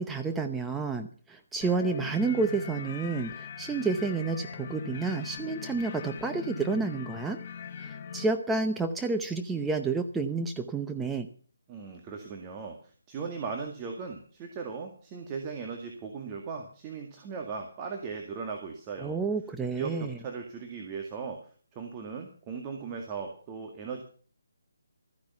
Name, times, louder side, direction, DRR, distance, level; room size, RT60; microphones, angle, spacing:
voice 1, 0.0-7.4 7.8-11.3 19.0-20.2, right 4 dB, 5° right, 5 dB, 0.8 m, -30 dB
sound 1, 1.6-8.3, left 7 dB, 40° left, 1.5 m, -40 dB
voice 2, 11.7-19.2 19.8-21.4 21.7-24.0, right 5 dB, 20° right, 2 dB, 2.0 m, -38 dB
14.0 x 10.5 x 7.0 m, 0.43 s
figure-of-eight pair, 150°, 0 cm